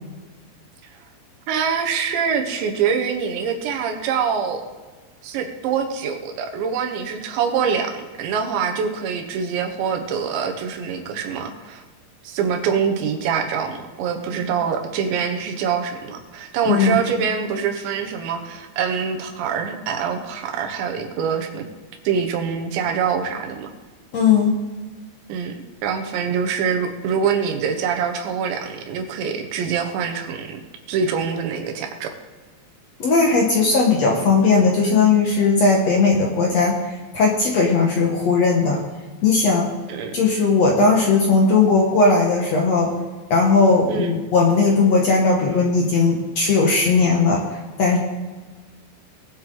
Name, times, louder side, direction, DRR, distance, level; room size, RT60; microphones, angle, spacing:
voice 1, 1.5-4.6 5.2-11.8 12.2-21.7 22.1-23.7 25.3-30.6 30.9-32.1 39.9-40.1 43.9-44.1, right 6 dB, 80° right, 4 dB, 3.5 m, -24 dB
voice 2, 16.7-17.0 24.1-24.6 33.0-36.8 37.1-38.8 39.2-39.7 40.1-42.9 43.3-47.5 47.8-48.0, left 4 dB, 65° left, -1 dB, 1.6 m, -17 dB
20.5 x 7.8 x 3.9 m, 1.3 s
omnidirectional pair, 5.1 m